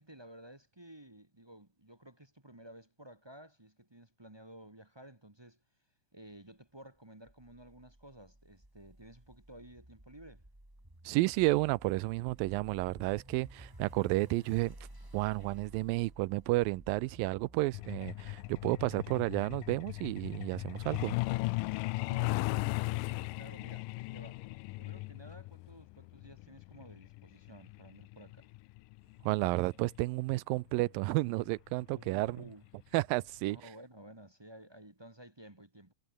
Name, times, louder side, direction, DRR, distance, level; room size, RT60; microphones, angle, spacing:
voice 1, 0.0-5.6 6.1-10.4 21.9-24.4 24.8-28.5 31.9-32.6 33.4-35.9, right 1 dB, 20° right, 0.6 m, -54 dB
sound 1, 7.3-20.4, right 1 dB, 5° right, 3.3 m, -55 dB
voice 2, 11.0-14.8 15.1-21.2 29.2-32.4 32.9-33.6, right 21 dB, 85° right, 2.3 m, -31 dB
Truck, 17.7-30.0 31.3-31.4 31.8-32.0 32.4-32.7 33.0-33.1 33.5-33.6, left 22 dB, 80° left, 2.1 m, -37 dB
omnidirectional pair, 4.0 m